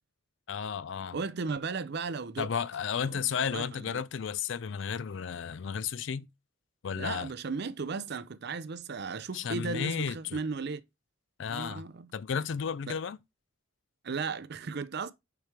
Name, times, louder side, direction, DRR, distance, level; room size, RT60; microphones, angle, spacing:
voice 1, 0.5-1.2 2.4-6.3 6.8-7.3 9.3-10.4 11.4-13.2, left 7 dB, 60° left, 0.4 m, -33 dB
voice 2, 1.1-2.5 3.1-4.0 6.9-10.8 11.5-12.1 12.9-13.0 14.0-15.1, right 4 dB, 50° right, 0.5 m, -36 dB
6.6 x 4.8 x 3.2 m
head